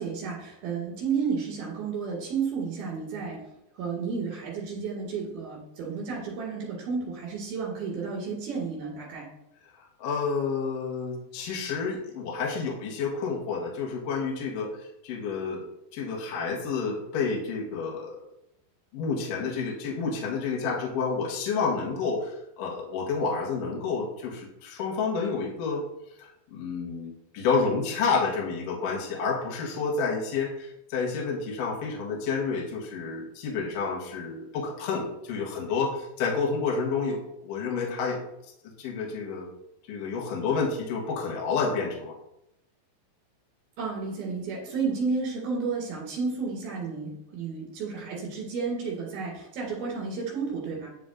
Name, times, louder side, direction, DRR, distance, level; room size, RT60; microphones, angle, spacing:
voice 1, 0.0-3.5 3.7-9.3 43.8-50.9, right 5 dB, 60° right, -3 dB, 3.7 m, -32 dB
voice 2, 10.0-15.7 15.9-18.2 18.9-25.8 26.2-39.5 39.9-42.1, left 5 dB, 65° left, -2 dB, 2.3 m, -30 dB
10.5 x 5.9 x 2.5 m, 0.83 s
omnidirectional pair, 5.2 m